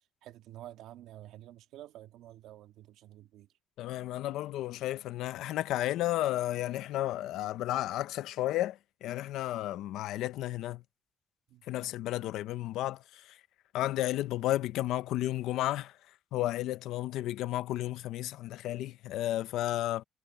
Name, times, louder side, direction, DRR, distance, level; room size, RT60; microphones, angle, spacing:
voice 1, 0.2-3.5 11.5-11.7, right 13 dB, 90° right, 1.9 m, -50 dB
voice 2, 3.8-10.8 11.6-13.4 13.7-20.0, left 14 dB, 90° left, 0.7 m, -33 dB
cardioid pair, 90°, 0 cm